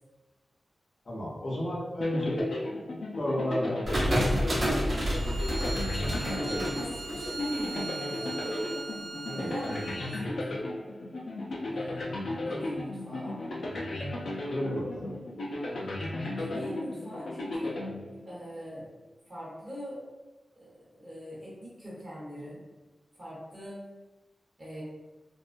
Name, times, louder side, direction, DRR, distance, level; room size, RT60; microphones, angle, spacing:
voice 1, 1.0-2.5 3.2-4.2 6.4-6.8 9.2-9.5 13.4-13.6 14.4-15.1, left 1 dB, 45° left, -4 dB, 0.7 m, -33 dB
sound 1, 2.0-18.6, left 2 dB, 85° left, 0.4 m, -35 dB
sound 2, 3.8-7.7, equal, 50° right, 0.9 m, -29 dB
Bowed string instrument, 4.9-10.3, right 3 dB, 80° right, 0.3 m, -40 dB
voice 2, 6.2-8.6 9.3-10.7 11.6-12.1 12.4-13.4 16.4-17.8 18.2-18.9 19.3-20.0 20.6-22.7 23.2-23.8 24.6-24.8, equal, 30° right, -7 dB, 1.0 m, -41 dB
2.3 x 2.1 x 2.5 m, 1.2 s
wide cardioid pair, 125°, 0 cm